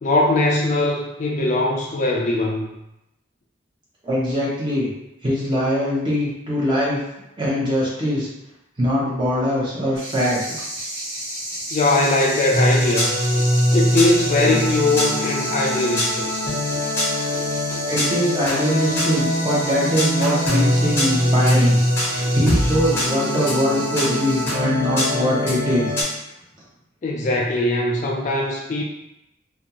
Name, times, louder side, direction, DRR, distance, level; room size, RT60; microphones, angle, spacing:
voice 1, 0.0-2.7 11.7-13.2 13.7-16.5 27.0-28.8, left 2 dB, 40° left, -1 dB, 0.3 m, -21 dB
voice 2, 4.0-4.9 5.2-7.0 7.4-8.3 8.8-10.6 17.9-25.9, equal, 25° right, -6 dB, 0.7 m, -22 dB
sound 1, 9.9-24.4, right 1 dB, 50° right, 1.3 m, -32 dB
sound 2, 12.5-26.0, equal, 10° left, 0.7 m, -22 dB
2.5 x 2.3 x 2.8 m, 0.88 s
head